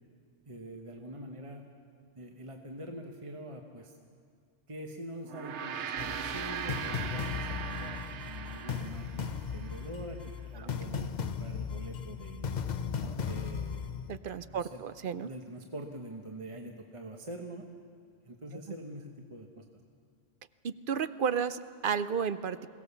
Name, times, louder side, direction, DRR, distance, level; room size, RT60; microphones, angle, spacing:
voice 1, 0.4-1.7 2.1-4.0 4.7-12.5 13.0-14.0 14.5-14.8 15.2-17.7 18.2-19.7, right 1 dB, 30° right, 3 dB, 1.2 m, -45 dB
Gong, 5.2-9.8, right 7 dB, 75° right, 1.0 m, -39 dB
sound 1, 6.0-14.2, left 6 dB, 45° left, 0.8 m, -37 dB
voice 2, 14.1-15.3 20.6-22.7, right 7 dB, 55° right, 13 dB, 0.7 m, -33 dB
22.5 x 17.0 x 7.0 m, 2.2 s
omnidirectional pair, 1.2 m